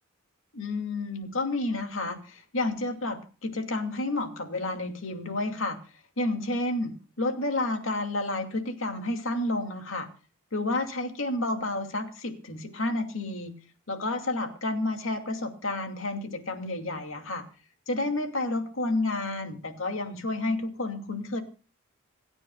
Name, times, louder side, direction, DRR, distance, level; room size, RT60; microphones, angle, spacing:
voice 1, 0.5-5.8 6.2-10.1 10.5-13.5 13.9-17.4 17.9-21.4, left 2 dB, 75° left, 5 dB, 2.5 m, -30 dB
27.5 x 9.8 x 2.3 m, 0.35 s
head